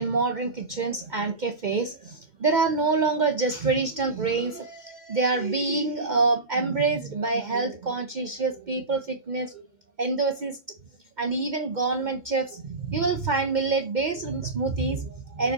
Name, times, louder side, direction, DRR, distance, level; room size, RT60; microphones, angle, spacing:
voice 1, 0.0-9.6 10.0-10.6 11.2-15.5, right 3 dB, 45° right, 0.8 m, -26 dB
7.1 x 5.2 x 2.9 m
omnidirectional pair, 1.2 m